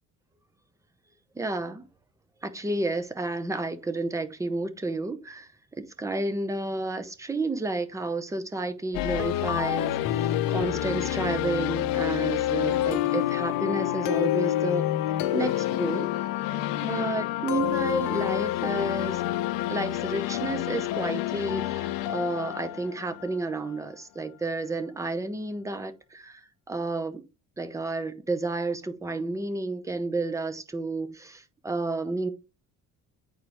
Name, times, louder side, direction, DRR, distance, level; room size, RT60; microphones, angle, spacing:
voice 1, 1.4-1.9 2.4-5.5 5.8-14.9 15.3-16.1 16.8-19.2 19.7-26.4 26.7-27.2 27.6-32.3, right 2 dB, 10° right, 0.7 m, -31 dB
sound 1, 8.9-23.8, left 13 dB, 85° left, 0.7 m, -28 dB
9.8 x 4.4 x 3.3 m
cardioid pair, 165°, 33 cm